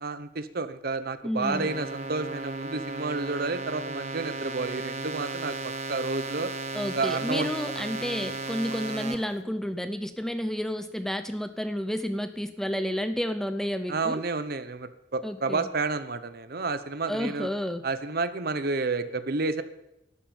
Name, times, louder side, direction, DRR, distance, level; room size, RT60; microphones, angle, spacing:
voice 1, 0.0-6.5 6.8-7.5 13.9-17.5 17.8-19.6, right 3 dB, 55° right, 12 dB, 0.8 m, -30 dB
voice 2, 1.2-1.8 6.7-14.2 15.2-15.7 17.1-17.8, equal, ahead, 9 dB, 0.5 m, -31 dB
sound 1, 1.4-9.2, right 3 dB, 35° right, 1.2 m, -35 dB
12.0 x 11.0 x 7.0 m, 0.88 s
head